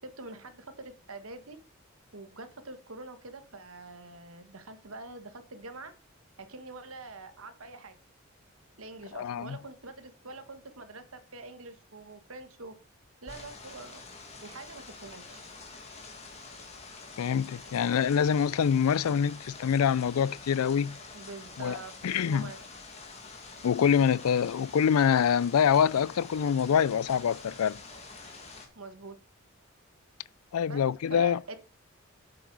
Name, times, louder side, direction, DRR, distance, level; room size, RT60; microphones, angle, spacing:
voice 1, 0.0-1.6 2.1-5.9 6.4-8.0 8.8-12.7 13.2-14.1 14.4-15.5 21.1-22.0 22.3-22.6 28.7-29.2 30.7-30.8 31.1-31.6, right 3 dB, 75° right, 1.5 m, -45 dB
voice 2, 9.1-9.6 17.2-21.0 21.6-21.8 22.0-22.5 23.6-27.8 30.5-31.4, left 7 dB, 85° left, 0.4 m, -25 dB
sound 1, 13.3-28.7, left 4 dB, 30° left, 2.0 m, -47 dB
8.6 x 7.8 x 4.7 m
head